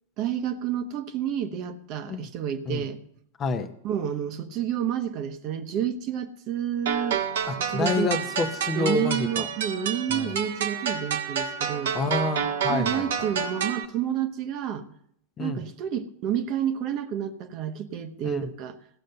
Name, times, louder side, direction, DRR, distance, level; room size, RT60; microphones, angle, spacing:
voice 1, 0.2-3.0 3.8-7.2 7.6-8.1 8.7-11.9 12.7-14.9 15.4-18.8, right 9 dB, 40° right, 9 dB, 1.0 m, -29 dB
voice 2, 3.4-3.7 7.5-9.5 10.1-10.3 11.9-13.3 15.4-15.6 18.2-18.5, left 4 dB, 25° left, 8 dB, 0.9 m, -29 dB
sound 1, 6.9-13.9, right 7 dB, 60° right, 1.0 m, -29 dB
16.0 x 6.5 x 6.8 m, 0.70 s
figure-of-eight pair, 90°, 0 cm